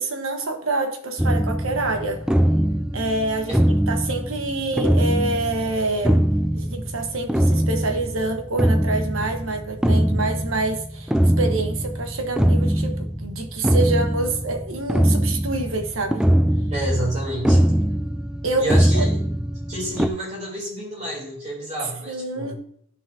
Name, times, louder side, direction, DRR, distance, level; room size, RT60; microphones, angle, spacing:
voice 1, 0.0-2.2 2.9-3.6 3.9-6.2 6.5-11.1 11.4-16.2 18.4-19.0 22.1-22.6, right 2 dB, 80° right, 5 dB, 1.3 m, -26 dB
sound 1, 1.2-20.1, equal, 5° right, 0.4 m, -22 dB
voice 2, 16.7-17.6 18.6-19.2 19.7-22.5, right 1 dB, 35° right, -4 dB, 3.2 m, -29 dB
11.5 x 6.9 x 2.8 m, 0.66 s
head